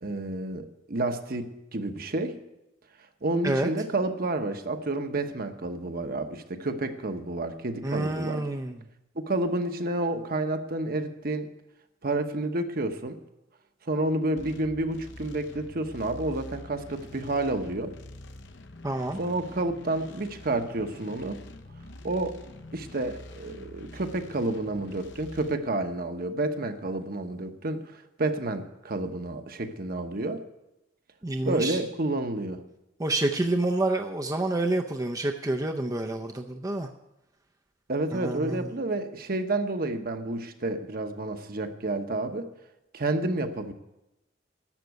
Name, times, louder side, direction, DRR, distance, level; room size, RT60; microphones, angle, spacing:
voice 1, 0.0-2.4 3.2-8.4 9.2-11.5 12.0-13.2 13.9-17.9 19.2-21.4 22.0-22.4 22.7-30.4 31.4-32.6 37.9-42.5 42.9-43.7, right 2 dB, 50° right, 7 dB, 1.0 m, -30 dB
voice 2, 7.8-8.8 18.8-19.2 31.2-31.8 33.0-36.9 38.1-38.7, right 2 dB, 20° right, 3 dB, 0.5 m, -28 dB
sound 1, 14.4-25.6, left 1 dB, 65° left, 0.9 m, -46 dB
12.0 x 7.5 x 9.3 m, 0.92 s
head